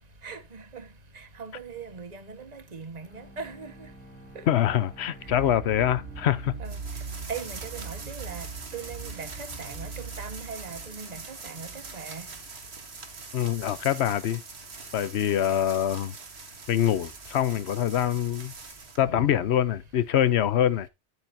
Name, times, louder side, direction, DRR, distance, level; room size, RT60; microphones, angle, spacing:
voice 1, 0.2-0.9 1.1-3.7 4.3-4.4 6.6-6.8 7.3-12.3 19.0-19.3, right 5 dB, 35° right, 1.5 m, -40 dB
Bowed string instrument, 3.0-7.4, right 1 dB, 10° left, 2.5 m, -51 dB
voice 2, 4.5-6.5 13.3-14.4 14.9-16.1 16.7-18.5 19.0-20.9, left 11 dB, 70° left, 1.0 m, -24 dB
sound 1, 5.3-12.0, right 4 dB, 85° right, 4.8 m, -41 dB
sound 2, 6.6-19.0, right 4 dB, 70° right, 1.9 m, -43 dB
11.5 x 8.8 x 2.7 m
omnidirectional pair, 1.2 m